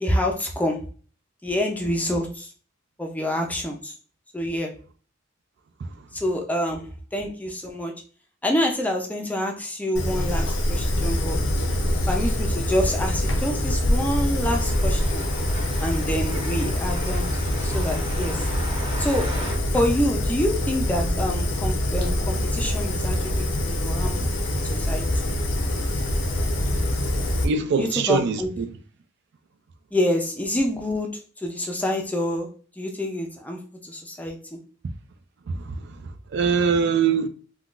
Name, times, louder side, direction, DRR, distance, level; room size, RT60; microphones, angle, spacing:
voice 1, 0.0-0.8 1.4-2.5 3.0-3.9 4.3-4.7 6.1-6.8 7.1-7.9 8.4-11.4 12.1-15.2 15.8-17.3 17.6-18.5 19.0-19.3 19.7-24.2 24.5-24.6 24.9-25.1 27.8-28.5 29.9-31.1 31.4-32.5 32.8-34.4, left 1 dB, 10° left, 0.4 m, -27 dB
Fire, 10.0-27.5, left 1 dB, 70° left, 0.6 m, -25 dB
sound 1, 14.4-19.6, right 1 dB, 25° right, 1.1 m, -37 dB
voice 2, 27.4-28.7 35.5-37.3, right 5 dB, 60° right, 0.4 m, -24 dB
3.7 x 2.3 x 2.4 m
head